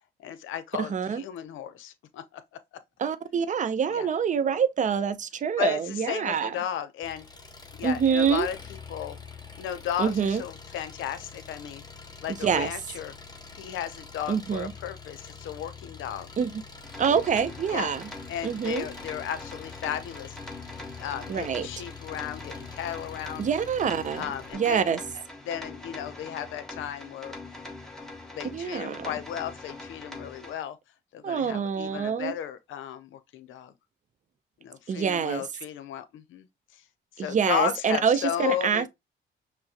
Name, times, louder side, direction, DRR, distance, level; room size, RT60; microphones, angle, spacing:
voice 1, 0.2-2.4 3.9-4.1 5.6-7.3 7.8-9.2 9.6-11.8 12.2-13.1 13.5-16.3 17.7-17.9 18.3-20.4 21.0-23.5 24.1-24.9 25.4-27.4 28.3-30.8 31.1-33.7 34.6-36.5 36.7-36.8 37.1-38.9, left 10 dB, 80° left, 0.6 m, -34 dB
voice 2, 0.8-1.2 3.0-6.5 7.8-8.5 10.0-10.4 12.3-12.7 14.3-14.7 16.4-16.6 17.0-18.1 18.4-18.9 21.3-21.7 23.4-24.3 24.5-25.0 28.5-29.1 31.2-32.4 34.9-35.4 37.2-38.9, right 7 dB, 40° right, 0.5 m, -26 dB
Engine, 7.0-24.5, left 5 dB, 20° left, 0.8 m, -45 dB
sound 1, 16.8-30.5, left 2 dB, ahead, 1.1 m, -43 dB
5.6 x 2.0 x 2.8 m
cardioid pair, 90°, 20 cm